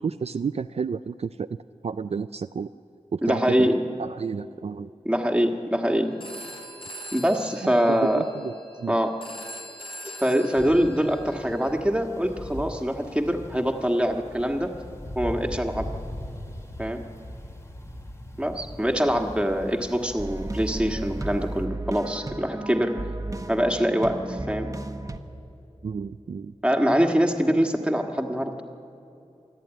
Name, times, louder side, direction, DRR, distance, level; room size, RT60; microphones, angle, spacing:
voice 1, 0.0-1.5 1.8-2.7 3.1-3.7 4.0-4.9 7.9-8.5 8.8-9.0 25.8-26.5, right 6 dB, 65° right, 11 dB, 0.4 m, -31 dB
voice 2, 3.2-3.8 5.0-6.1 7.1-8.2 8.9-9.1 10.2-14.7 15.1-15.9 16.8-17.0 18.4-22.9 23.5-24.7 26.6-28.5, equal, 10° right, 3 dB, 1.6 m, -24 dB
Telephone, 6.2-11.8, equal, 50° left, 3.8 m, -42 dB
sound 1, 10.6-21.7, left 1 dB, 25° left, 1.5 m, -40 dB
sound 2, 20.2-25.2, right 2 dB, 30° right, 1.1 m, -33 dB
26.5 x 11.0 x 9.1 m, 2.8 s
wide cardioid pair, 80°, 12 cm